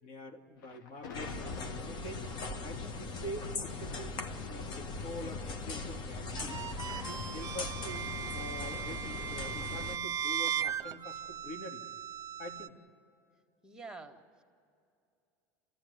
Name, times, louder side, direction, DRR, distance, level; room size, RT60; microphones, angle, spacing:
voice 1, 0.0-2.3 2.6-4.2 4.4-6.6 7.0-11.8 12.4-12.8, left 1 dB, 65° left, 2 dB, 2.4 m, -45 dB
Thunder, 0.6-7.8, left 6 dB, 80° left, 1.4 m, -51 dB
sound 1, 1.1-10.0, left 3 dB, 50° left, 1.5 m, -40 dB
sound 2, 6.4-12.7, right 9 dB, 35° right, 0.9 m, -38 dB
voice 2, 13.6-14.4, right 3 dB, 5° right, 4 dB, 1.9 m, -48 dB
28.0 x 16.0 x 9.7 m, 2.6 s
hypercardioid pair, 85°, 10 cm